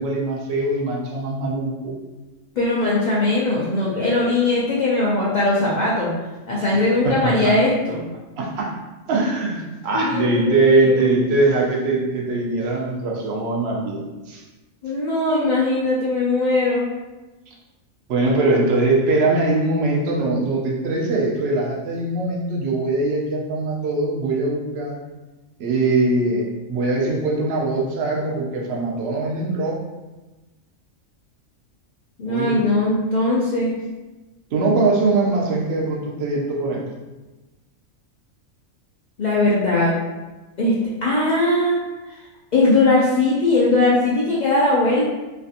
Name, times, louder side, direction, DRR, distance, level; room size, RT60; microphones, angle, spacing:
voice 1, 0.0-1.9 6.6-6.8 7.0-7.5 8.4-8.7 9.1-14.4 17.5-17.6 18.1-25.0 25.6-29.8 32.3-32.7 34.5-36.8, right 2 dB, 60° right, -1 dB, 0.7 m, -21 dB
voice 2, 2.6-6.1 6.5-8.0 9.9-11.1 14.8-16.9 32.2-33.8 39.2-39.9 40.6-40.7 41.0-41.8 42.5-45.0, left 2 dB, 90° left, -7 dB, 0.4 m, -20 dB
3.2 x 2.6 x 2.5 m, 1.1 s
omnidirectional pair, 1.5 m